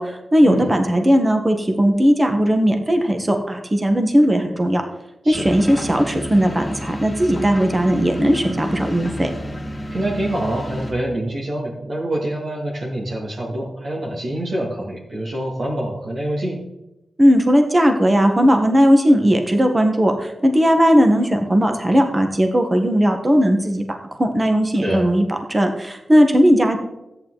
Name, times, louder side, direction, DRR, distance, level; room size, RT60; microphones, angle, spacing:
voice 1, 0.0-4.8 5.2-9.3 17.2-26.8, equal, 20° right, 4 dB, 1.4 m, -17 dB
sound 1, 5.3-10.9, equal, 15° left, 2.2 m, -30 dB
voice 2, 9.9-16.6 24.8-25.0, right 1 dB, 55° right, -5 dB, 2.5 m, -26 dB
14.0 x 9.2 x 4.1 m, 0.91 s
wide cardioid pair, 130°, 0 cm